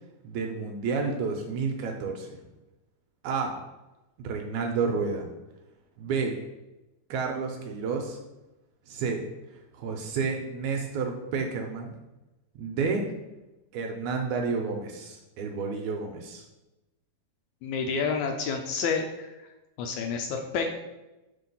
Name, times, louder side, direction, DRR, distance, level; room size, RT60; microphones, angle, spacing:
voice 1, 0.2-2.3 3.2-3.6 4.2-5.3 6.0-6.3 7.1-8.2 8.9-9.2 9.7-12.0 12.6-13.1 13.7-16.5, right 5 dB, 80° right, 3 dB, 1.8 m, -30 dB
voice 2, 17.6-19.3 19.8-20.7, left 5 dB, 80° left, 4 dB, 1.8 m, -29 dB
5.8 x 3.7 x 5.4 m, 1.0 s
omnidirectional pair, 3.7 m